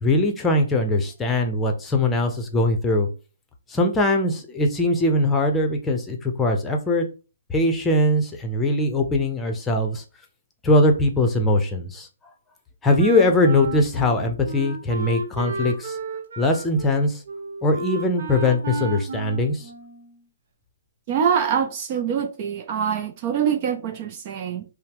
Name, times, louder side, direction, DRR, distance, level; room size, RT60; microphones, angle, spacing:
voice 1, 0.0-3.1 3.7-7.1 7.5-10.0 10.6-12.1 12.8-16.0 16.4-17.2 17.6-19.7, left 1 dB, 10° left, 0.7 m, -21 dB
Wind instrument woodwind instrument, 13.0-20.2, right 2 dB, 60° right, 0.8 m, -33 dB
voice 2, 21.1-24.6, right 8 dB, 35° right, 0.4 m, -24 dB
5.5 x 2.1 x 3.6 m
hypercardioid pair, 150°, 0 cm